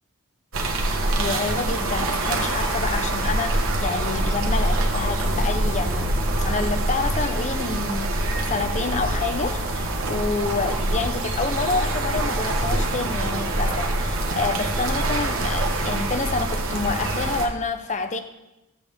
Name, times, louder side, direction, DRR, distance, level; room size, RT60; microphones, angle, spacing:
sound 1, 0.5-17.5, right 1 dB, 65° right, 1.2 m, -25 dB
voice 1, 1.2-6.1 6.4-18.2, left 3 dB, 35° left, 8 dB, 0.7 m, -28 dB
14.0 x 7.1 x 3.5 m, 0.94 s
head